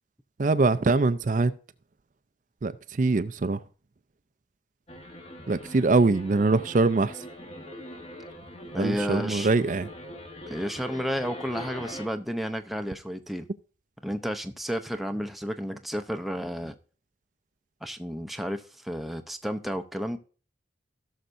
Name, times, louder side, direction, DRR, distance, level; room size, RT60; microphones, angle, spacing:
voice 1, 0.4-1.5 2.6-3.6 5.5-7.3 8.7-9.9, right 3 dB, 45° right, 0.4 m, -23 dB
sound 1, 4.9-12.1, equal, 30° left, 1.3 m, -42 dB
voice 2, 8.7-9.5 10.5-13.5 14.0-16.7 17.8-20.2, equal, ahead, 0.6 m, -32 dB
17.0 x 6.5 x 2.6 m
head